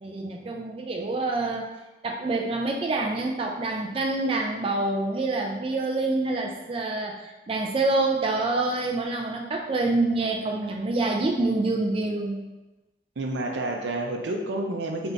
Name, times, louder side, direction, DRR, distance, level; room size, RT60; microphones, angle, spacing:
voice 1, 0.0-1.7 2.0-12.4, right 2 dB, 30° right, 1 dB, 0.3 m, -26 dB
voice 2, 13.2-15.1, right 1 dB, 85° right, 3 dB, 0.6 m, -29 dB
4.3 x 3.3 x 2.6 m, 1.1 s
head